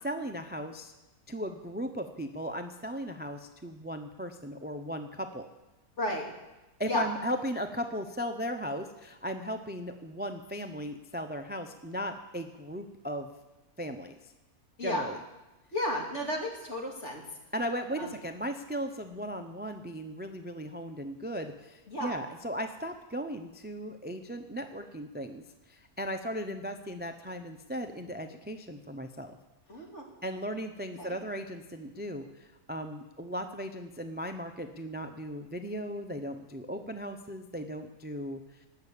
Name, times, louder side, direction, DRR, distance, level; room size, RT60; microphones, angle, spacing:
voice 1, 0.0-0.9 1.3-5.5 6.8-13.3 13.8-14.1 14.8-15.2 17.5-25.4 25.7-29.3 30.2-38.4, equal, 10° right, 7 dB, 0.5 m, -37 dB
voice 2, 6.0-6.3 6.8-7.1 14.8-15.1 15.7-17.2 18.0-18.1 21.9-22.2 29.7-30.0 30.9-31.2, left 1 dB, 50° left, 0 dB, 2.9 m, -33 dB
19.0 x 6.9 x 8.4 m, 1.0 s
omnidirectional pair, 1.6 m